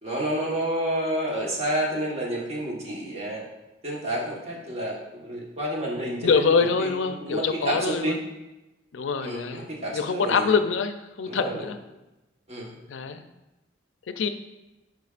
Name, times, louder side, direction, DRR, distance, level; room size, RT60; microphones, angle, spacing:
voice 1, 0.0-3.4 3.8-8.2 9.2-10.5 11.3-11.7 12.5-12.7, right 1 dB, 35° right, -3 dB, 1.3 m, -30 dB
voice 2, 6.2-8.2 8.9-9.6 9.9-11.8 12.9-13.3 14.1-14.3, left 5 dB, 85° left, 9 dB, 0.5 m, -25 dB
9.3 x 5.0 x 2.5 m, 1.0 s
head